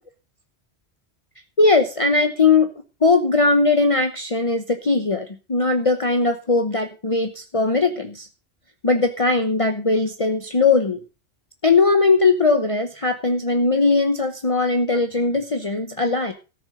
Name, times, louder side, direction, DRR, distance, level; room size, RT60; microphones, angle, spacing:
voice 1, 1.6-2.7 3.0-8.3 8.8-11.0 11.6-16.3, left 3 dB, 30° left, 7 dB, 1.0 m, -19 dB
13.5 x 7.1 x 6.4 m, 0.32 s
omnidirectional pair, 1.1 m